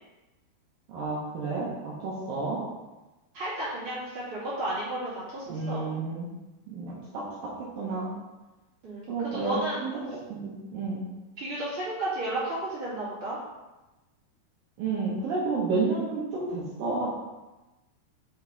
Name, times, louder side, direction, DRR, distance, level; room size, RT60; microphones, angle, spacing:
voice 1, 0.9-2.6 5.5-6.3 6.7-7.2 7.8-8.1 9.1-11.0 14.8-17.1, right 3 dB, 65° right, -6 dB, 2.4 m, -31 dB
voice 2, 3.3-5.9 8.8-9.9 11.4-13.4, right 1 dB, 35° right, -10 dB, 2.5 m, -33 dB
6.7 x 5.3 x 3.9 m, 1.1 s
omnidirectional pair, 5.0 m